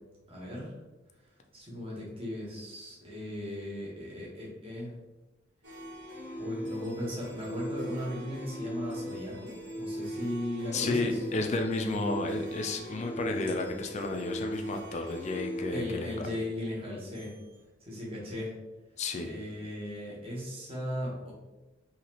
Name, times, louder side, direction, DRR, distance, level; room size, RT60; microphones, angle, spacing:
voice 1, 0.3-0.8 1.5-4.9 6.4-11.2 15.7-17.3 17.8-18.5 19.2-21.3, left 1 dB, 30° right, -5 dB, 1.1 m, -37 dB
sound 1, 5.6-17.4, equal, 65° right, 1.1 m, -39 dB
voice 2, 10.7-16.3 19.0-19.3, left 2 dB, 40° left, 4 dB, 0.4 m, -32 dB
4.0 x 2.8 x 2.9 m, 1.0 s
head